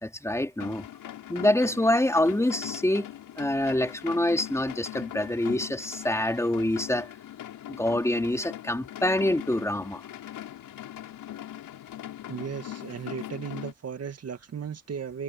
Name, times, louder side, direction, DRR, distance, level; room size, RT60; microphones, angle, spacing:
voice 1, 0.0-0.8 1.3-3.1 3.4-7.1 7.7-10.0, left 1 dB, 10° left, 3.1 m, -26 dB
sound 1, 0.6-13.7, left 12 dB, 85° left, 7.0 m, -41 dB
voice 2, 12.3-15.2, right 7 dB, 45° right, 2.1 m, -36 dB
cardioid pair, 105°, 34 cm